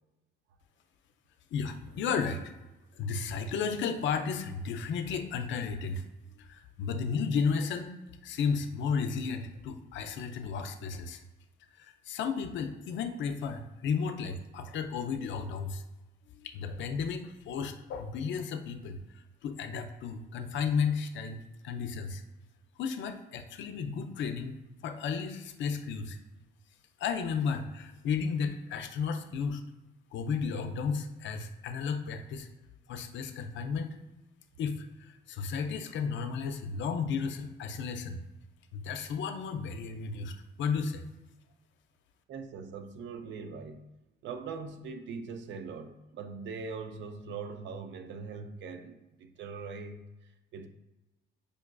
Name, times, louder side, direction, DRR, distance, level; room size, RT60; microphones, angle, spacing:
voice 1, 1.5-2.5 3.0-6.0 6.4-8.0 8.2-11.2 11.8-15.8 16.4-19.0 19.4-22.2 22.8-24.5 24.8-26.2 27.0-29.6 30.1-32.5 32.9-34.0 34.6-34.8 35.3-38.2 38.7-41.0, left 5 dB, 70° left, 7 dB, 0.4 m, -33 dB
voice 2, 42.3-43.9 44.2-50.7, right 5 dB, 70° right, 7 dB, 0.4 m, -41 dB
5.0 x 2.3 x 2.2 m, 1.0 s
cardioid pair, 90°, 20 cm